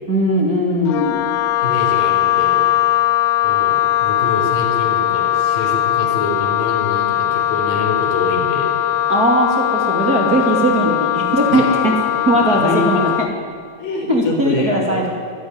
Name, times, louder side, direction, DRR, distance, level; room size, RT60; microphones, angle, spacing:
voice 1, 0.1-1.3 9.1-11.9 12.2-13.3 14.1-15.1, right 1 dB, 30° right, -1 dB, 2.6 m, -18 dB
Wind instrument woodwind instrument, 0.9-13.3, left 12 dB, 85° left, 1.5 m, -19 dB
voice 2, 1.6-2.6 3.4-8.7 11.5-11.8 12.1-13.0 13.8-15.1, left 3 dB, 65° left, 1 dB, 5.6 m, -26 dB
23.5 x 14.5 x 9.6 m, 2.1 s
omnidirectional pair, 4.1 m